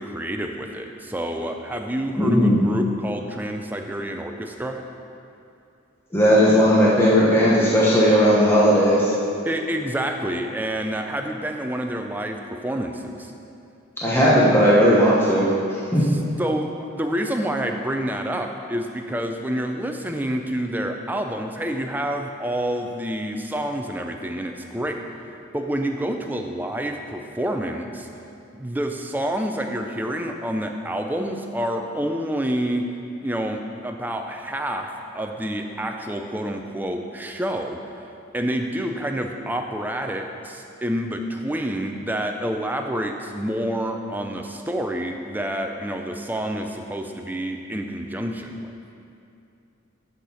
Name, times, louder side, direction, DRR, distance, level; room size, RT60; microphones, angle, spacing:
voice 1, 0.0-4.8 9.4-13.3 16.0-25.0 25.5-28.1 28.5-32.9 33.2-38.1 38.3-48.7, right 1 dB, 10° right, 3 dB, 0.4 m, -28 dB
voice 2, 2.2-2.6 6.1-9.0 14.0-15.5 15.9-16.0, equal, 10° left, -7 dB, 1.0 m, -16 dB
6.5 x 5.8 x 6.9 m, 2.6 s
head